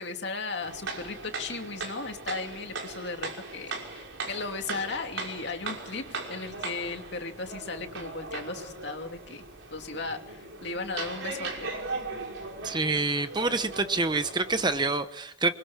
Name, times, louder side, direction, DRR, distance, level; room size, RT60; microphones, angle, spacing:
voice 1, 0.0-9.4 9.7-11.7, left 3 dB, 55° left, 4 dB, 2.8 m, -36 dB
sound 1, 0.6-14.9, right 3 dB, 70° right, 5.7 m, -39 dB
voice 2, 12.6-15.5, right 3 dB, 20° right, 10 dB, 0.9 m, -27 dB
27.0 x 23.0 x 7.4 m, 0.81 s
head